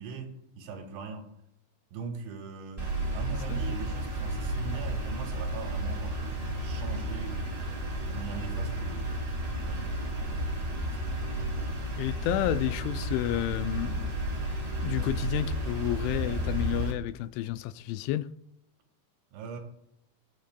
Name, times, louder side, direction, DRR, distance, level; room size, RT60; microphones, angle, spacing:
voice 1, 0.0-1.3 1.9-7.5 8.0-9.2 9.6-9.9 10.3-11.2 19.3-19.6, right 5 dB, 80° right, 3.9 m, -41 dB
sound 1, 2.8-16.9, right 1 dB, 30° right, 1.1 m, -32 dB
voice 2, 12.0-14.2 14.8-18.3, left 14 dB, 85° left, 2.9 m, -31 dB
21.5 x 7.9 x 2.2 m
omnidirectional pair, 5.3 m